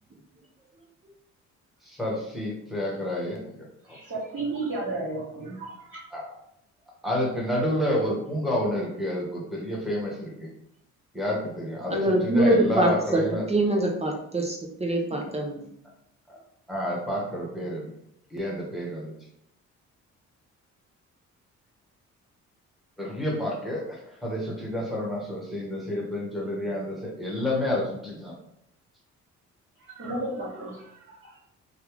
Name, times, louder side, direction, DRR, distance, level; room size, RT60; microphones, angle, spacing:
voice 1, 1.8-3.5 3.8-4.0 6.1-6.3 7.0-10.5 11.1-13.5 16.3-16.4 16.7-17.9 18.3-19.1 23.0-28.3, left 1 dB, ahead, -4 dB, 1.3 m, -29 dB
voice 2, 3.8-6.0 29.8-31.4, right 2 dB, 45° right, -10 dB, 1.5 m, -33 dB
voice 3, 11.9-13.2 13.5-15.6, right 1 dB, 20° right, 1 dB, 0.5 m, -24 dB
3.2 x 2.4 x 3.3 m, 0.75 s
cardioid pair, 90°, 30 cm